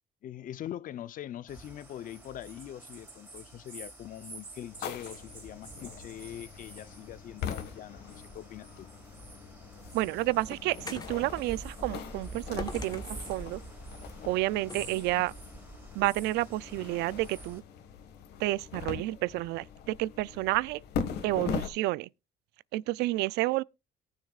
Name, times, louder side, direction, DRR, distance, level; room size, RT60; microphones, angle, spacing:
voice 1, 0.2-8.9, left 11 dB, 55° left, 0.6 m, -43 dB
sound 1, 1.5-17.6, right 2 dB, 10° right, 4.1 m, -47 dB
sound 2, 4.7-21.7, left 7 dB, 75° left, 1.6 m, -41 dB
sound 3, 9.3-11.3 12.6-13.5 14.7-15.0, left 4 dB, 25° left, 1.4 m, -43 dB
voice 2, 9.9-13.0 13.3-13.6 14.3-15.3 15.9-17.6 18.4-20.8 21.2-22.1 22.7-23.6, right 18 dB, 85° right, 0.4 m, -30 dB
18.5 x 6.4 x 2.4 m
cardioid pair, 110°, 17 cm